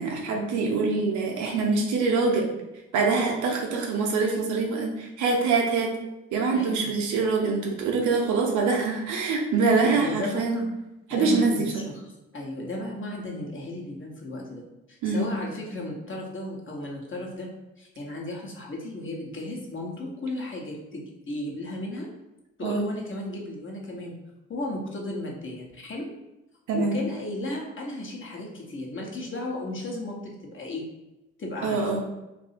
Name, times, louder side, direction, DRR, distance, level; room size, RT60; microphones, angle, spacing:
voice 1, 0.0-2.5 2.9-5.9 6.3-10.6 11.1-11.5 15.0-15.3 22.6-22.9 26.7-27.0 31.6-32.0, right 4 dB, 60° right, 0 dB, 0.8 m, -24 dB
voice 2, 6.5-6.9 9.8-10.7 11.1-12.0 12.3-14.6 14.9-17.5 17.8-22.1 22.6-24.1 24.5-26.1 26.7-30.8 31.4-31.9, left 1 dB, 35° left, -1 dB, 1.1 m, -35 dB
2.7 x 2.6 x 4.2 m, 0.99 s
figure-of-eight pair, 45°, 34 cm